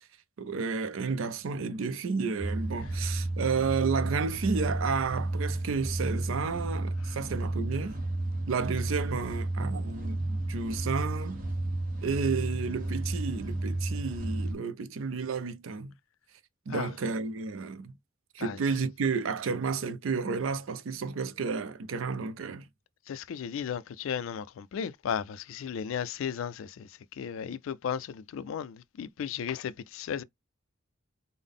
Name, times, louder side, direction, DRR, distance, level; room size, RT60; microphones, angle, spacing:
voice 1, 0.4-8.0 8.5-11.4 12.0-15.9 16.7-17.9 18.3-22.7, right 5 dB, 70° right, 0.4 m, -31 dB
sound 1, 2.4-14.5, right 2 dB, 40° right, 0.8 m, -32 dB
voice 2, 23.1-26.9 27.2-30.2, left 8 dB, 65° left, 0.3 m, -35 dB
3.6 x 2.0 x 3.6 m
head